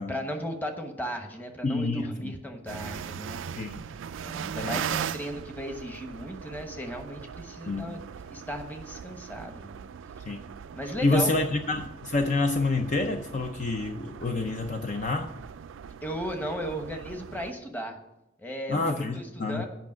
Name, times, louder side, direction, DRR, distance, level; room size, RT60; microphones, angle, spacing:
voice 1, 0.1-3.4 4.2-8.0 8.3-9.9 10.7-11.3 15.8-18.0 18.4-19.6, equal, 10° left, 4 dB, 1.1 m, -36 dB
voice 2, 1.6-2.3 3.6-3.8 4.6-4.8 7.7-7.9 10.2-10.4 11.0-15.3 18.7-19.6, left 2 dB, 40° left, 6 dB, 0.5 m, -28 dB
sound 1, 2.7-17.5, right 7 dB, 80° right, 0.4 m, -39 dB
8.4 x 5.8 x 7.4 m, 0.90 s
head